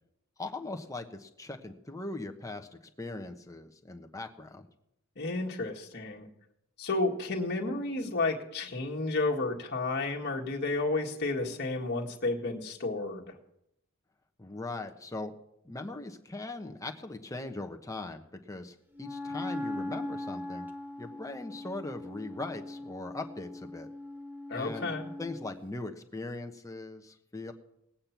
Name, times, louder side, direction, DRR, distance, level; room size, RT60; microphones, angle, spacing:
voice 1, 0.4-2.7 3.0-4.7 14.4-15.3 15.6-20.7 21.0-23.9 24.5-24.9 25.2-27.5, left 2 dB, 15° left, 5 dB, 1.1 m, -40 dB
voice 2, 5.2-6.3 6.8-13.3 24.5-25.1, left 2 dB, 50° left, 0 dB, 1.7 m, -31 dB
Wind instrument woodwind instrument, 18.9-25.6, left 1 dB, 10° right, 0.7 m, -40 dB
18.5 x 8.7 x 5.9 m, 0.81 s
head